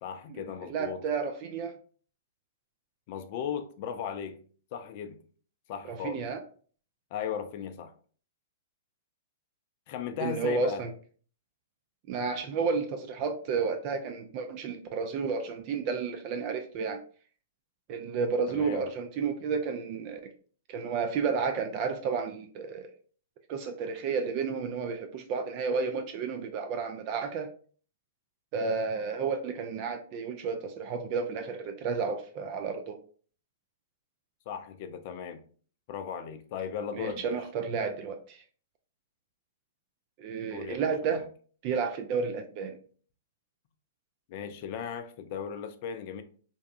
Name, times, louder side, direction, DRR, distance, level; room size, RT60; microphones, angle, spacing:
voice 1, 0.0-1.0 3.1-4.4 4.7-5.2 5.7-6.2 7.1-7.9 9.9-10.8 18.5-18.9 34.5-35.4 35.9-37.4 40.5-41.2 44.3-46.2, left 7 dB, 45° left, 0.4 m, -37 dB
voice 2, 0.7-1.7 5.9-6.4 10.2-10.9 12.1-17.0 17.9-20.3 20.7-22.9 23.5-27.5 28.5-33.0 36.9-38.4 40.2-41.3 41.6-42.8, right 5 dB, 40° right, 0.3 m, -31 dB
2.6 x 2.2 x 2.4 m
figure-of-eight pair, 110°, 0 cm